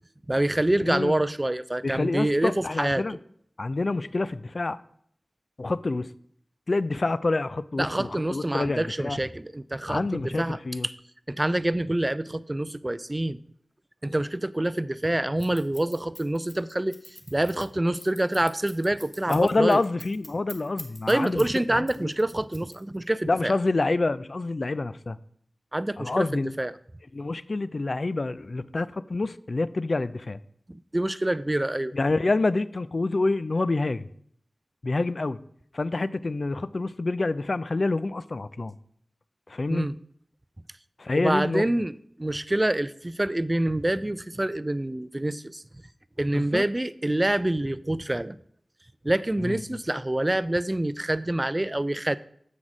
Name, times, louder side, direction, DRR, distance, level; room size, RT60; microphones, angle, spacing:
voice 1, 0.3-3.0 7.8-10.6 11.3-13.4 14.0-17.0 17.3-19.8 21.1-23.5 25.7-26.3 26.6-26.7 30.9-31.9 39.7-39.9 41.1-41.9 42.2-45.6 46.2-48.4 49.0-52.2, right 1 dB, 25° right, 16 dB, 0.4 m, -26 dB
voice 2, 0.8-1.2 1.8-3.2 3.6-4.8 5.6-6.1 6.7-9.2 9.9-10.9 19.3-22.1 23.3-25.2 26.0-26.6 27.1-30.4 31.9-34.1 34.8-35.4 35.7-38.7 39.5-39.9 41.0-41.7 46.3-46.6 49.4-49.8, left 3 dB, 60° left, 16 dB, 0.4 m, -27 dB
Scissors, 15.4-21.6 21.9-23.1, equal, 15° left, 1.8 m, -44 dB
7.4 x 6.1 x 4.9 m, 0.65 s
cardioid pair, 45°, 0 cm